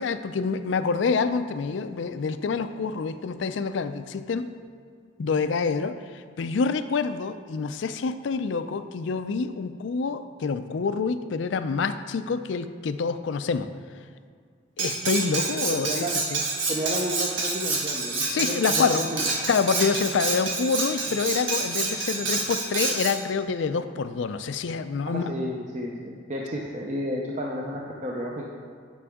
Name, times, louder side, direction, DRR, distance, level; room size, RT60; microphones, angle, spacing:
voice 1, 0.0-4.5 5.2-5.9 6.4-13.7 14.8-16.4 18.3-19.0 19.5-25.3, left 5 dB, 75° left, 11 dB, 0.4 m, -27 dB
Cutlery silverware, 14.8-23.2, right 3 dB, 85° right, 1.4 m, -28 dB
voice 2, 15.5-16.2 16.7-19.3 25.1-28.4, equal, 40° right, -2 dB, 0.6 m, -32 dB
9.5 x 6.0 x 3.6 m, 2.1 s
head